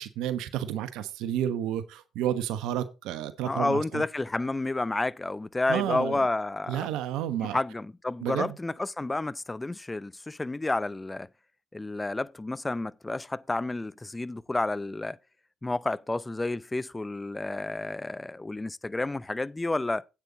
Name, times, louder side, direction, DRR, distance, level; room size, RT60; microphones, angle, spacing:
voice 1, 0.0-4.0 5.7-6.2 6.7-7.6 8.2-8.5, right 11 dB, 75° right, 1.1 m, -31 dB
voice 2, 3.5-6.9 7.4-11.3 11.7-15.2 15.6-20.1, left 2 dB, 15° left, 0.6 m, -30 dB
8.8 x 8.1 x 4.0 m
supercardioid pair, 65°, 0 cm